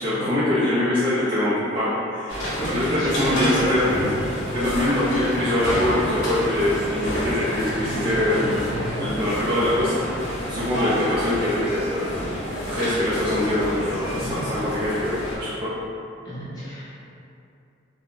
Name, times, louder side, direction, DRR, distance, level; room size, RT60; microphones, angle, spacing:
voice 1, 0.0-2.4 2.7-4.1 4.5-8.5 9.0-10.0 10.5-12.0 12.3-15.7, left 1 dB, 25° right, -11 dB, 0.4 m, -23 dB
sound 1, 2.3-15.4, equal, 70° left, 0.7 m, -29 dB
voice 2, 2.5-3.9 4.5-4.7 8.7-9.0 14.1-14.4 16.2-16.9, equal, 20° left, -12 dB, 0.8 m, -31 dB
2.2 x 2.0 x 3.7 m, 2.5 s
head